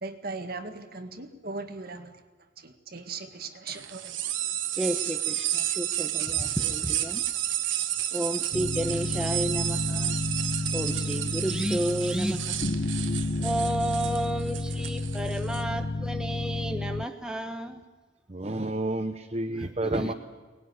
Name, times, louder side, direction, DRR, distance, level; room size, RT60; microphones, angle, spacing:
voice 1, 0.0-2.1 2.6-4.2, right 3 dB, 50° right, 7 dB, 1.8 m, -38 dB
sound 1, 3.7-15.6, right 12 dB, 80° right, 1.3 m, -31 dB
voice 2, 4.7-7.2 8.1-10.2 10.7-12.6 13.4-17.8 19.8-20.1, right 1 dB, 5° right, 5 dB, 1.0 m, -31 dB
sound 2, 8.5-17.1, left 2 dB, 40° left, 0.7 m, -31 dB
voice 3, 18.3-20.1, right 2 dB, 35° right, 5 dB, 0.9 m, -30 dB
23.5 x 19.5 x 9.6 m, 1.4 s
head